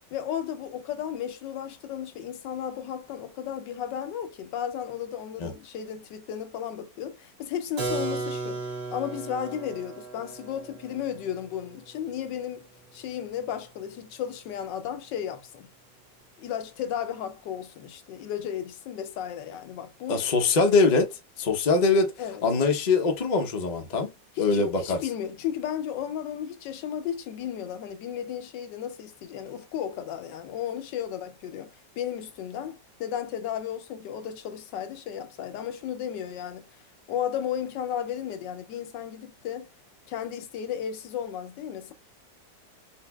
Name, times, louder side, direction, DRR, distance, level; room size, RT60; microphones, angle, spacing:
voice 1, 0.1-8.6 8.9-12.7 12.9-15.7 16.4-20.2 22.2-22.4 24.4-36.7 37.1-39.7 40.1-41.9, left 9 dB, 85° left, 1.3 m, -34 dB
Keyboard (musical), 7.8-13.4, right 3 dB, 55° right, 1.1 m, -36 dB
voice 2, 20.1-22.1 22.4-24.1 24.4-25.0, left 4 dB, 70° left, 0.4 m, -23 dB
3.8 x 2.6 x 2.2 m
omnidirectional pair, 1.9 m